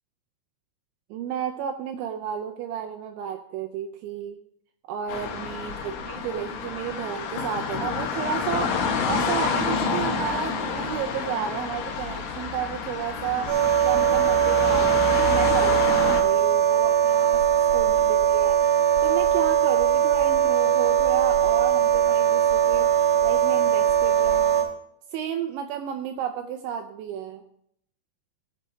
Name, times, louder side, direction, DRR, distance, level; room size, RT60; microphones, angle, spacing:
voice 1, 1.1-4.4 4.9-17.4 17.7-18.6 19.0-24.7 25.1-27.4, right 9 dB, 85° right, 5 dB, 2.7 m, -32 dB
sound 1, 5.1-16.2, left 5 dB, 75° left, 3.6 m, -29 dB
sound 2, 13.5-24.6, right 10 dB, 65° right, 3.1 m, -20 dB
16.5 x 8.8 x 3.3 m, 0.71 s
omnidirectional pair, 5.9 m